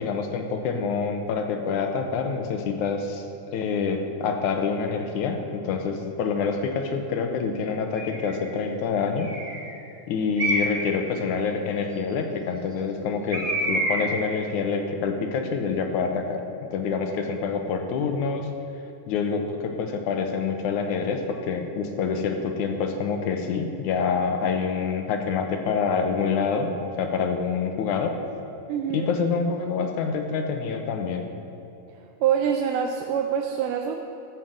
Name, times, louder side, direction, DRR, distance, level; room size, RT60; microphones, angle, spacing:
voice 1, 0.0-3.2 3.5-9.3 10.1-18.5 19.1-28.1 28.9-31.2, left 5 dB, 75° left, 5 dB, 2.4 m, -26 dB
Bird, 8.0-8.4 9.2-9.7 10.4-11.0 13.3-14.3, right 1 dB, 25° right, 1.2 m, -27 dB
voice 2, 28.7-29.1 32.2-34.0, right 8 dB, 90° right, 3 dB, 2.2 m, -25 dB
13.5 x 7.1 x 7.5 m, 2.7 s
omnidirectional pair, 3.6 m